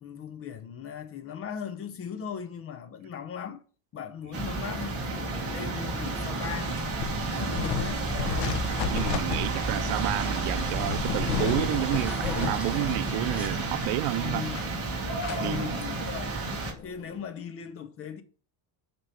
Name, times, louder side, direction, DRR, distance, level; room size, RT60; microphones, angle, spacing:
voice 1, 0.0-3.6 3.9-6.8 7.3-8.0 14.2-14.6 15.4-16.4 16.8-18.2, left 8 dB, 30° left, 0.6 m, -38 dB
sound 1, 4.3-16.7, right 3 dB, 30° right, 1.7 m, -31 dB
sound 2, 4.5-17.2, left 6 dB, 85° left, 1.1 m, -35 dB
Zipper (clothing), 8.2-15.0, equal, 5° right, 0.9 m, -44 dB
voice 2, 8.9-14.5 15.3-15.8, right 18 dB, 90° right, 0.6 m, -30 dB
8.1 x 3.0 x 5.5 m
cardioid pair, 180°, 44 cm